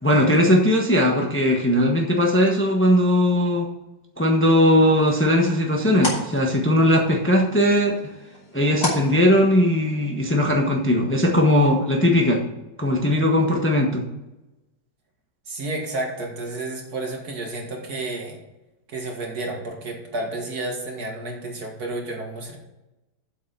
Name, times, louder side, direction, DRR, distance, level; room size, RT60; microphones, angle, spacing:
voice 1, 0.0-3.7 4.2-8.0 8.5-12.4 12.8-14.1, left 1 dB, 10° left, 1 dB, 1.1 m, -19 dB
sound 1, 4.6-10.0, left 2 dB, 60° left, 3.7 m, -34 dB
voice 2, 15.5-18.4 18.9-22.6, right 2 dB, 60° right, 1 dB, 2.4 m, -31 dB
7.9 x 6.7 x 6.8 m, 0.96 s
omnidirectional pair, 1.9 m